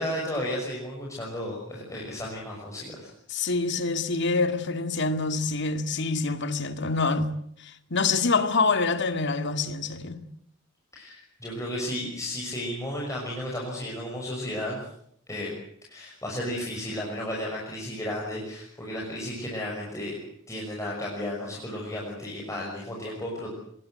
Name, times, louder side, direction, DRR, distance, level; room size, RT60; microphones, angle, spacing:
voice 1, 0.0-3.1 10.9-14.9 15.3-15.5 15.9-20.1 20.5-23.5, left 1 dB, 15° left, 6.2 m, -33 dB
voice 2, 3.3-7.3 7.6-10.2, left 4 dB, 60° left, 2.3 m, -26 dB
25.5 x 21.5 x 7.8 m
head